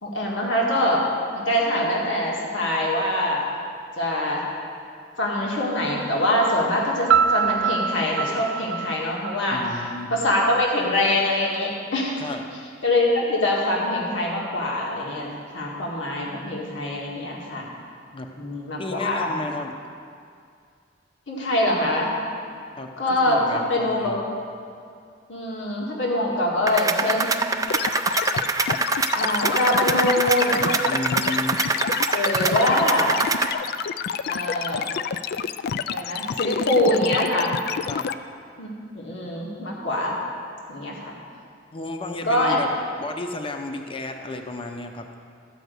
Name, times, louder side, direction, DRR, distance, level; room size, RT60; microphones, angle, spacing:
voice 1, 0.0-1.1 1.3-3.4 4.0-4.4 5.2-9.6 10.1-12.2 12.8-17.7 18.4-19.3 21.3-22.1 23.0-24.2 25.3-27.3 29.1-30.7 32.2-33.1 34.3-34.9 35.9-37.5 38.6-40.2 40.7-41.1 42.2-42.6, left 1 dB, 85° left, -3 dB, 1.9 m, -24 dB
Piano, 7.1-9.9, right 7 dB, 90° right, 0.3 m, -23 dB
voice 2, 9.5-10.1 12.2-12.4 18.1-18.3 18.8-19.7 22.8-24.2 30.9-31.6 37.9-38.1 41.7-42.7 43.0-45.1, left 2 dB, 30° left, 4 dB, 0.8 m, -33 dB
sound 1, 26.7-33.5, right 4 dB, 20° right, 0.4 m, -25 dB
sound 2, 27.7-38.1, left 7 dB, 55° left, 0.3 m, -28 dB
13.5 x 5.2 x 8.1 m, 2.3 s
head